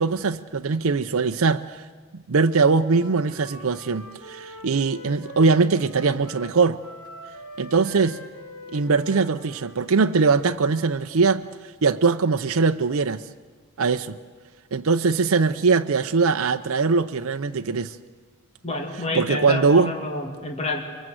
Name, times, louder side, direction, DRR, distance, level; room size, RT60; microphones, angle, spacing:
voice 1, 0.0-1.8 2.1-6.8 7.6-8.2 8.7-11.4 11.8-13.2 13.8-14.2 14.7-18.0 19.1-19.9, right 4 dB, 75° right, 0.6 m, -21 dB
Wind instrument woodwind instrument, 2.6-11.1, left 1 dB, 85° left, 4.9 m, -44 dB
voice 2, 18.6-20.8, left 2 dB, 30° left, 2.3 m, -28 dB
23.5 x 23.0 x 7.8 m
head